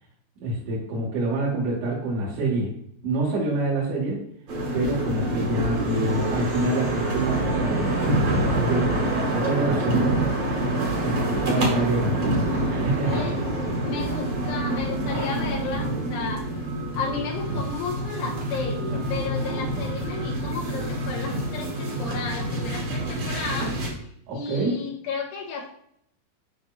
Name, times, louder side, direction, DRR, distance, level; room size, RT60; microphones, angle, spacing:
voice 1, 0.4-2.7 3.0-4.2 4.7-10.1 11.0-12.2 12.7-13.3 24.3-24.7, right 2 dB, 70° right, -7 dB, 4.1 m, -26 dB
sound 1, 4.5-23.9, right 1 dB, 45° right, 2.3 m, -26 dB
voice 2, 10.9-11.7 13.1-16.5 16.9-23.8 24.3-25.7, left 5 dB, 75° left, -2 dB, 3.7 m, -33 dB
10.0 x 5.7 x 2.5 m, 0.70 s
omnidirectional pair, 5.6 m